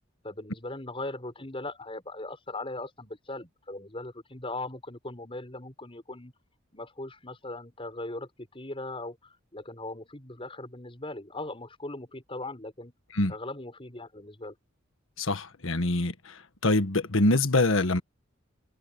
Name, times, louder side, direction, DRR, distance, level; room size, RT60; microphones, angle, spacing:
voice 1, 0.2-6.3 6.7-12.9 13.3-14.5, left 2 dB, 25° left, 5.6 m, -39 dB
voice 2, 15.2-18.0, left 2 dB, 75° left, 1.6 m, -25 dB
head